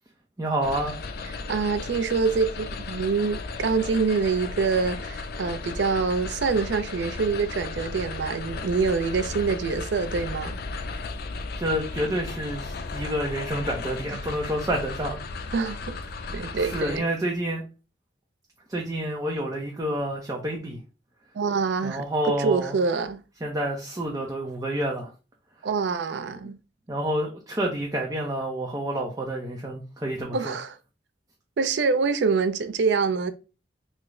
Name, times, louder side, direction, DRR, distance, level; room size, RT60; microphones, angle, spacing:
voice 1, 0.4-1.0 11.6-15.5 16.5-17.6 18.7-20.8 21.8-22.7 23.4-25.1 26.9-30.6, right 1 dB, 20° right, 0.5 m, -29 dB
sound 1, 0.6-17.0, left 3 dB, 55° left, 0.3 m, -35 dB
voice 2, 1.3-10.6 14.1-14.2 15.5-16.0 16.3-17.1 21.3-23.2 25.6-26.6 30.3-30.8 31.6-33.3, right 4 dB, 70° right, 0.4 m, -25 dB
3.2 x 2.0 x 3.6 m
head